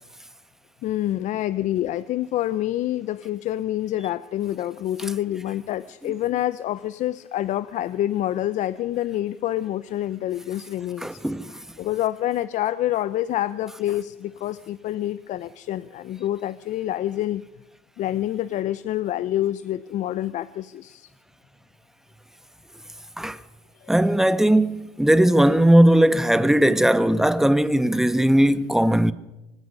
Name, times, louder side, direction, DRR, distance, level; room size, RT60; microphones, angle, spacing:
voice 1, 0.8-11.2 11.8-17.4 18.0-21.1 23.8-23.9, left 13 dB, 60° left, 0.7 m, -27 dB
voice 2, 11.0-11.6 23.2-23.4 23.9-29.1, right 1 dB, 5° right, 1.3 m, -18 dB
25.5 x 19.5 x 5.5 m
supercardioid pair, 85°, 14 cm